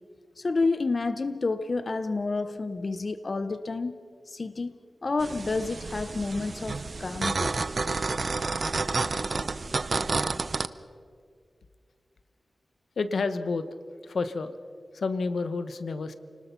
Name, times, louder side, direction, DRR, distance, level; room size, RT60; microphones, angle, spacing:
voice 1, 0.4-4.0 4.3-4.7 5.0-7.5, left 3 dB, 45° left, 0.7 m, -29 dB
sound 1, 5.2-10.7, right 3 dB, 45° right, 0.7 m, -30 dB
voice 2, 13.0-13.7 14.0-14.5 14.9-16.1, left 4 dB, 80° left, 1.0 m, -29 dB
29.0 x 19.5 x 5.8 m
wide cardioid pair, 115°, 0 cm